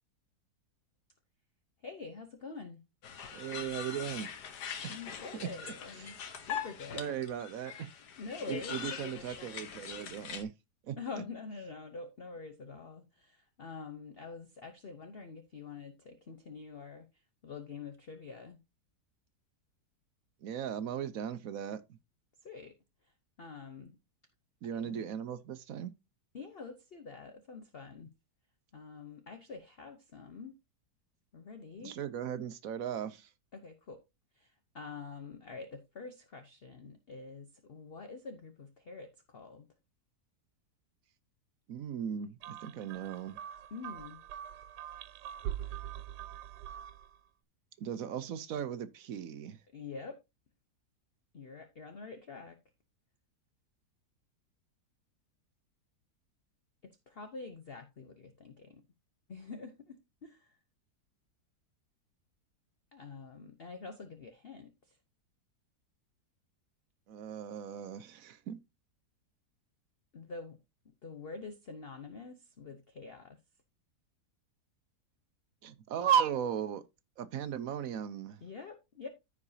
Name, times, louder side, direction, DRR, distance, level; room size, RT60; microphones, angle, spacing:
voice 1, 1.8-2.8 4.9-7.1 8.2-8.9 11.0-18.6 22.4-22.7 23.0-23.1 23.4-24.0 24.7-25.1 26.3-28.1 28.7-30.6 31.3-32.0 33.5-34.0 34.3-39.7 43.7-44.2 49.7-50.2 51.3-52.6 57.1-58.8 59.3-60.6 62.9-65.0 70.1-70.6 71.0-73.4 78.4-79.1, left 4 dB, 45° left, 0.9 m, -46 dB
sound 1, 3.0-10.4, left 7 dB, 80° left, 1.7 m, -42 dB
voice 2, 3.3-4.3 4.8-5.0 5.3-5.7 6.0-6.1 6.9-7.9 8.5-10.5 10.8-11.0 20.4-21.8 24.6-25.9 31.8-33.3 41.7-43.4 47.8-49.6 67.1-68.6 75.6-76.8 77.2-78.4, right 9 dB, 65° right, 1.0 m, -36 dB
sound 2, 42.4-47.2, right 11 dB, 85° right, 1.2 m, -43 dB
14.5 x 4.9 x 2.7 m
omnidirectional pair, 1.7 m